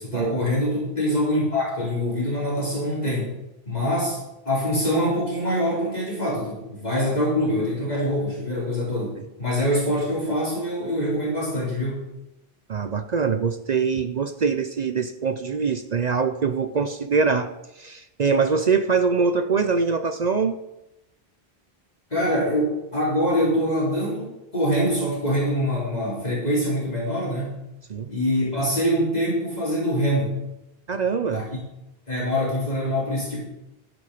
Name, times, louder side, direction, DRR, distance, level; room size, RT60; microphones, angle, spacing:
voice 1, 0.0-3.3 3.7-4.2 4.4-12.1 22.1-27.6 28.1-30.4 31.3-31.6 32.1-33.4, equal, 40° left, -7 dB, 4.8 m, -24 dB
voice 2, 12.7-17.5 17.8-20.6 27.9-28.1 30.9-31.4, right 5 dB, 50° right, 10 dB, 0.6 m, -23 dB
12.0 x 10.0 x 5.0 m, 0.90 s
omnidirectional pair, 1.1 m